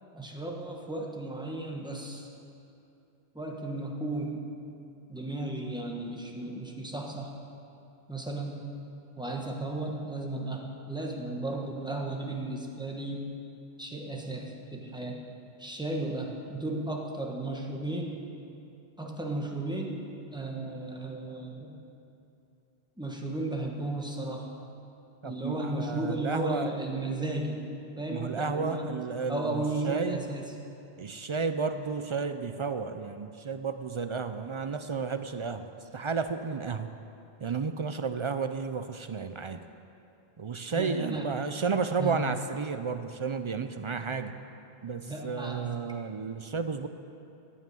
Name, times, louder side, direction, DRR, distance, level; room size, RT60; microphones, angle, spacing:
voice 1, 0.1-2.3 3.3-4.4 5.1-7.3 8.1-8.6 9.2-13.3 13.8-15.2 15.6-18.2 19.0-20.0 20.3-21.8 23.0-24.5 25.2-27.7 28.0-29.0 29.3-30.5 40.7-41.3 42.0-42.2 45.1-45.6, right 2 dB, 5° right, 0 dB, 1.3 m, -34 dB
voice 2, 25.2-26.8 28.1-30.2 31.0-36.9 37.4-39.7 40.4-44.4 44.8-46.9, right 5 dB, 50° right, 9 dB, 0.3 m, -32 dB
16.5 x 5.7 x 9.1 m, 2.7 s
omnidirectional pair, 1.1 m